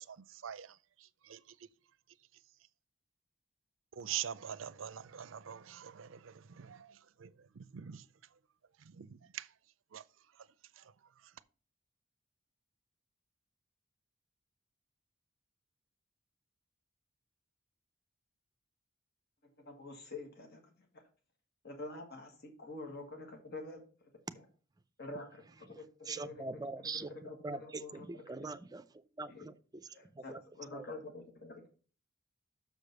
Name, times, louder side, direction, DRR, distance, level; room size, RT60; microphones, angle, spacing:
voice 1, 0.0-1.4 3.9-8.1 8.8-9.5 9.9-10.0 10.8-10.9, right 10 dB, 80° right, 0.5 m, -44 dB
voice 2, 19.6-21.0 21.6-23.8 24.3-24.4 25.0-28.4 29.3-29.4 29.9-31.6, left 2 dB, 55° left, 1.6 m, -47 dB
voice 3, 26.1-27.1 27.4-28.8 29.2-29.5 30.2-30.4 30.7-30.8, right 3 dB, 20° right, 0.5 m, -42 dB
6.6 x 5.0 x 6.6 m
head